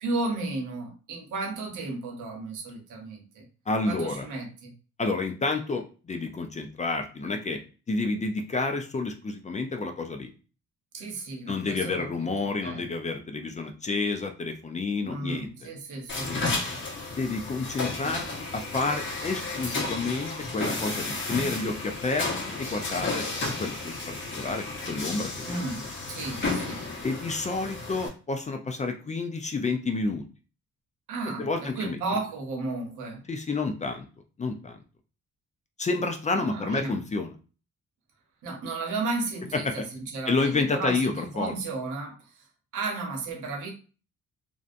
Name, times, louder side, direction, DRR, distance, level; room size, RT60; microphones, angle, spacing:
voice 1, 0.0-3.5 3.8-4.7 10.9-12.1 12.4-12.9 15.0-16.4 25.4-26.9 31.1-33.3 36.3-37.0 38.4-42.5 42.7-43.7, right 3 dB, 80° right, 1 dB, 0.9 m, -34 dB
voice 2, 3.7-4.3 5.0-7.6 7.9-10.3 11.5-15.5 16.3-16.4 17.1-18.2 18.5-23.3 23.6-25.9 27.0-30.2 31.4-32.0 33.3-34.1 34.4-34.8 35.8-37.3 39.5-39.9 40.3-41.5, left 3 dB, 25° left, 5 dB, 0.4 m, -30 dB
sound 1, 16.1-28.1, left 3 dB, 40° left, 1.0 m, -33 dB
2.6 x 2.2 x 2.4 m, 0.36 s
cardioid pair, 90°, 30 cm